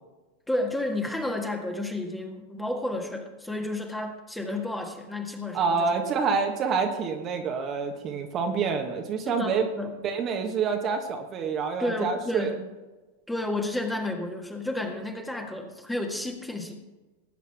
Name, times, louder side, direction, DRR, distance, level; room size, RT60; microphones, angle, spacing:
voice 1, 0.5-5.9 9.2-10.0 11.8-12.6 13.3-16.8, left 1 dB, 5° left, 3 dB, 1.7 m, -31 dB
voice 2, 5.5-9.6 10.0-12.5, right 5 dB, 30° right, 3 dB, 1.4 m, -27 dB
19.5 x 9.2 x 3.6 m, 1.1 s
figure-of-eight pair, 90°, 0 cm